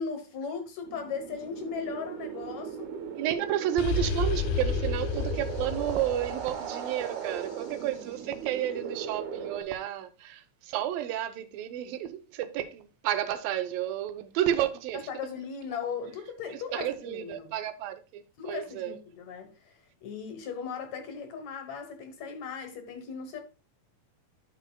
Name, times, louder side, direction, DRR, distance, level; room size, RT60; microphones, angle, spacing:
voice 1, 0.0-2.9 15.1-17.5 18.4-19.7 20.0-23.4, left 6 dB, 65° left, 2.1 m, -37 dB
sound 1, 0.8-9.6, right 7 dB, 65° right, 2.8 m, -38 dB
voice 2, 3.2-15.1 16.5-19.0, right 11 dB, 90° right, 2.6 m, -31 dB
sound 2, 3.8-7.5, left 5 dB, 80° left, 2.5 m, -31 dB
11.0 x 6.7 x 2.2 m
omnidirectional pair, 3.9 m